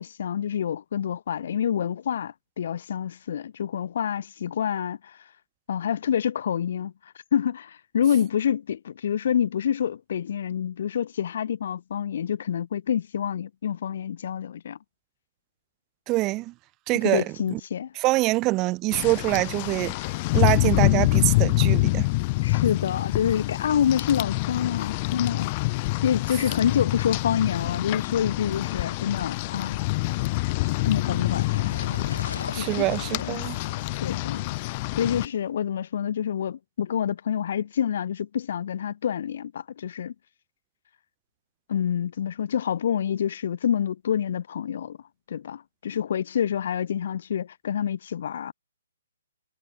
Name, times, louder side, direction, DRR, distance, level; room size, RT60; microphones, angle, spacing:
voice 1, 0.0-5.3 5.7-6.9 7.3-14.8 17.0-17.9 22.4-25.6 26.0-29.8 30.9-31.5 32.6-32.8 33.1-33.4 34.0-34.4 35.0-40.1 41.7-45.0 45.3-48.5, left 9 dB, 55° left, 1.3 m, -27 dB
voice 2, 16.1-16.5 16.9-17.2 17.5-17.6 18.0-19.9 20.3-22.1 32.5-33.6, right 20 dB, 25° right, 0.9 m, -24 dB
Rain, 18.9-35.3, left 23 dB, 35° left, 0.5 m, -26 dB
sound 1, 28.4-35.4, left 4 dB, 80° left, 5.7 m, -41 dB
hypercardioid pair, 140°, 0 cm